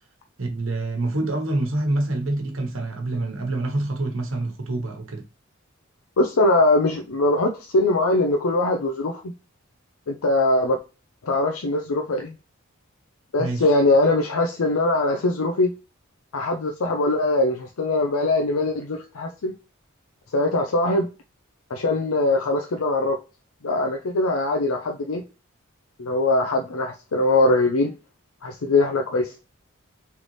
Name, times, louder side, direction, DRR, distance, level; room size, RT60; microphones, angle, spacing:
voice 1, 0.4-5.3 13.4-13.6, right 2 dB, 70° right, 1.2 m, -26 dB
voice 2, 6.2-9.2 10.1-10.8 11.2-12.3 13.3-15.7 16.3-19.5 20.3-21.1 21.7-23.2 23.6-25.2 26.0-27.9 28.4-29.5, left 2 dB, 90° left, 0.6 m, -21 dB
4.0 x 3.4 x 3.1 m
head